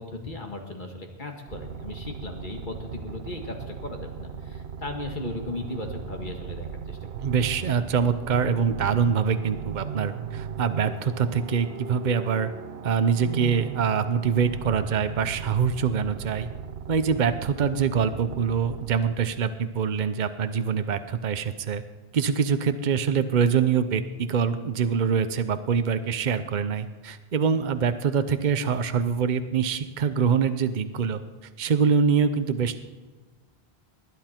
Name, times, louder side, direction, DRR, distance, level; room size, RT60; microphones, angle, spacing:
voice 1, 0.0-7.1, left 2 dB, 50° left, 3 dB, 2.1 m, -37 dB
sound 1, 1.5-19.5, right 7 dB, 85° right, 1.0 m, -37 dB
voice 2, 7.2-12.5 12.8-16.5 16.9-21.8 22.1-31.2 31.6-32.8, right 6 dB, 50° right, 11 dB, 0.9 m, -24 dB
20.0 x 11.0 x 4.5 m, 1.3 s
omnidirectional pair, 1.0 m